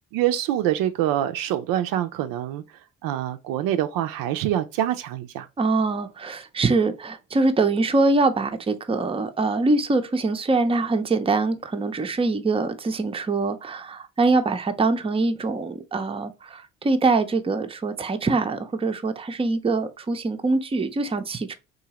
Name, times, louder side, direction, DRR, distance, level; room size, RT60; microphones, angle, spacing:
voice 1, 0.1-2.6 3.0-5.5, right 12 dB, 60° right, 0.5 m, -25 dB
voice 2, 5.6-21.5, right 3 dB, 15° right, 0.5 m, -23 dB
3.7 x 2.7 x 2.8 m
figure-of-eight pair, 40°, 38 cm